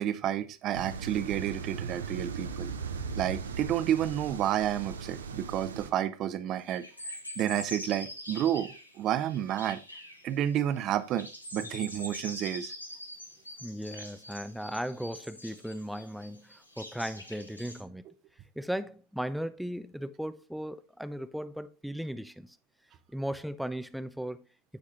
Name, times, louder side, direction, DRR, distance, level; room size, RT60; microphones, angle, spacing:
voice 1, 0.0-2.7 3.2-9.8 10.2-11.3 11.5-12.7, right 11 dB, 35° right, 0.7 m, -30 dB
sound 1, 0.7-5.9, right 5 dB, 70° right, 0.8 m, -38 dB
sound 2, 6.7-10.3 10.5-10.8 11.1-17.8, left 1 dB, 85° left, 1.3 m, -44 dB
voice 2, 13.6-18.0 18.6-22.6 23.1-24.4, equal, ahead, 0.4 m, -37 dB
14.0 x 4.8 x 2.5 m
figure-of-eight pair, 90°, 0 cm